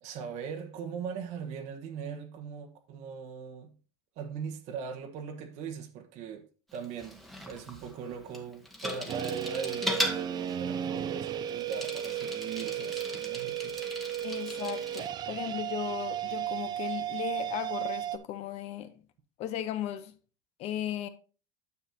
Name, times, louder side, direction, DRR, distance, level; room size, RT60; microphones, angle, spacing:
voice 1, 0.0-3.7 4.2-6.4 6.7-13.9, right 6 dB, 55° right, 1.3 m, -40 dB
Bicycle, 6.7-15.1, equal, ahead, 1.4 m, -38 dB
sound 1, 9.1-18.2, right 10 dB, 30° right, 0.5 m, -34 dB
voice 2, 14.2-18.9 19.4-20.1 20.6-21.1, left 11 dB, 50° left, 0.9 m, -36 dB
9.6 x 6.8 x 2.8 m
supercardioid pair, 135°, 14 cm